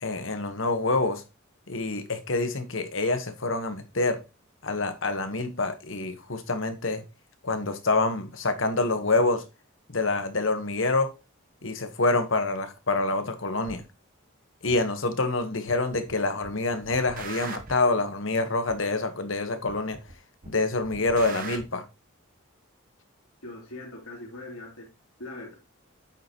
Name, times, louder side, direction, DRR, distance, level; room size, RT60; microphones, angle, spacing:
voice 1, 0.0-1.2 1.7-4.2 4.6-7.0 7.4-9.4 9.9-11.1 11.6-13.8 14.6-20.0 20.5-21.8, left 3 dB, 65° left, 1.4 m, -26 dB
sound 1, 13.7-13.8 14.7-14.8 15.7-16.1 16.4-17.9 18.7-18.8 19.7-20.1 20.4-21.6, right 4 dB, 40° right, 1.3 m, -40 dB
voice 2, 23.4-24.9 25.2-25.5, left 2 dB, 90° left, 3.1 m, -41 dB
8.8 x 6.8 x 3.1 m
head